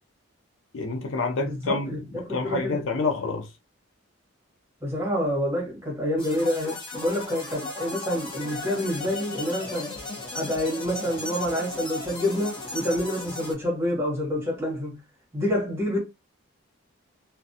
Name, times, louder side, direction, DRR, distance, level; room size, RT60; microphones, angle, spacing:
voice 1, 0.7-1.9 2.1-3.5, left 4 dB, 65° left, 0.5 m, -28 dB
voice 2, 1.4-2.8 4.8-9.9 10.3-15.0 15.3-16.0, left 1 dB, 10° right, 1.2 m, -27 dB
sound 1, 6.2-13.5, left 2 dB, 25° left, 1.0 m, -36 dB
2.5 x 2.2 x 2.6 m
head